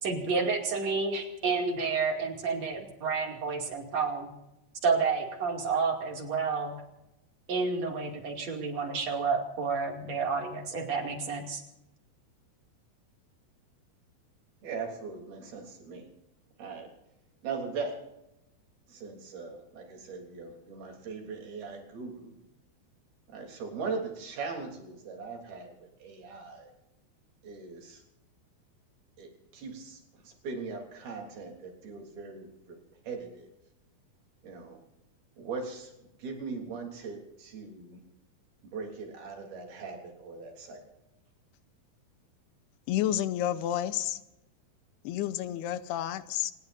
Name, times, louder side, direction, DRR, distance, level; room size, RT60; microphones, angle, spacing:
voice 1, 0.0-4.3 4.8-6.8 7.5-11.6, right 4 dB, 45° right, 2 dB, 3.4 m, -30 dB
voice 2, 14.6-16.1 16.6-16.9 17.4-18.0 18.9-22.4 23.3-26.7 27.4-28.0 29.2-32.8 33.0-33.5 34.4-34.8 35.4-38.0 38.7-40.8, right 4 dB, 70° right, 1 dB, 5.2 m, -40 dB
voice 3, 42.9-44.2 45.0-46.5, left 12 dB, 90° left, 12 dB, 2.9 m, -30 dB
27.0 x 20.0 x 2.7 m, 0.90 s
omnidirectional pair, 4.6 m